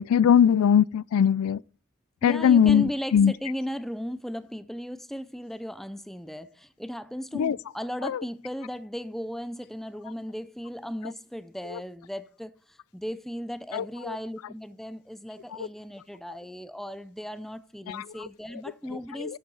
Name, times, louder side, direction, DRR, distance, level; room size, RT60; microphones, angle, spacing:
voice 1, 0.0-1.6 2.2-3.3 7.3-7.6 8.0-8.2 11.7-11.8 13.7-14.2 17.9-18.0 19.2-19.4, left 8 dB, 85° left, 0.3 m, -21 dB
voice 2, 2.2-12.5 12.9-19.4, equal, ahead, 0.5 m, -36 dB
12.5 x 7.7 x 4.0 m
head